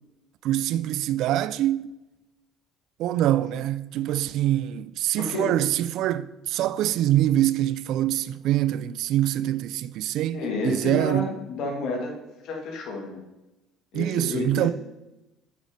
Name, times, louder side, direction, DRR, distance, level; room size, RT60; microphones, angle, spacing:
voice 1, 0.4-1.9 3.0-11.3 13.9-14.7, right 13 dB, 65° right, 0.4 m, -24 dB
voice 2, 5.2-5.5 10.3-12.1 12.4-13.2 13.9-14.7, left 3 dB, 65° left, 1.8 m, -30 dB
8.0 x 5.0 x 5.1 m
hypercardioid pair, 70°, 0 cm